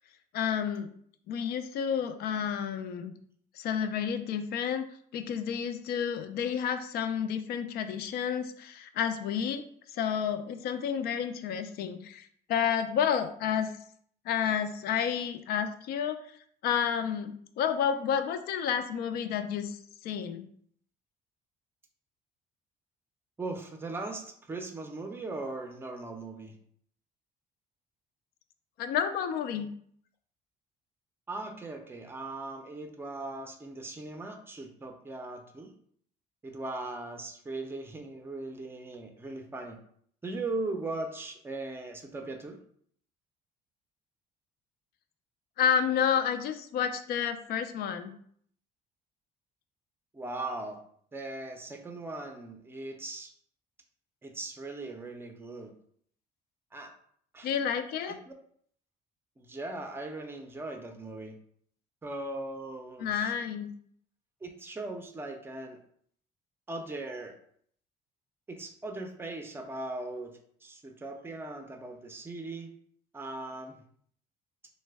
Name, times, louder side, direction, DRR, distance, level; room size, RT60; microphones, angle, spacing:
voice 1, 0.3-0.9 1.3-3.1 3.6-9.6 9.9-13.7 14.3-16.2 16.6-20.4 28.8-29.7 45.6-48.1 57.4-58.2 63.0-63.7, left 8 dB, 70° left, 9 dB, 0.4 m, -30 dB
voice 2, 23.4-26.5 31.3-35.7 36.4-39.8 40.2-42.6 50.1-50.8 51.1-53.3 54.2-55.7 56.7-56.9 57.3-57.5 58.0-58.3 59.4-61.3 62.0-63.3 64.4-65.8 66.7-67.4 68.5-72.7 73.1-73.8, right 2 dB, 15° right, 4 dB, 0.5 m, -39 dB
3.2 x 2.1 x 3.3 m, 0.62 s
cardioid pair, 110°, 17 cm